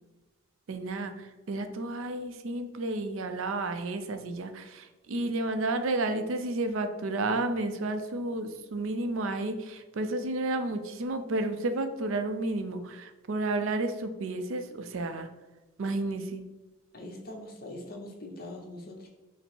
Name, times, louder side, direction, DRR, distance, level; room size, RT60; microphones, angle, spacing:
voice 1, 0.7-15.3 15.8-16.4, right 2 dB, 70° right, 8 dB, 0.4 m, -31 dB
voice 2, 16.9-19.1, left 1 dB, 45° left, 0 dB, 0.8 m, -42 dB
5.2 x 2.0 x 4.4 m, 1.1 s
head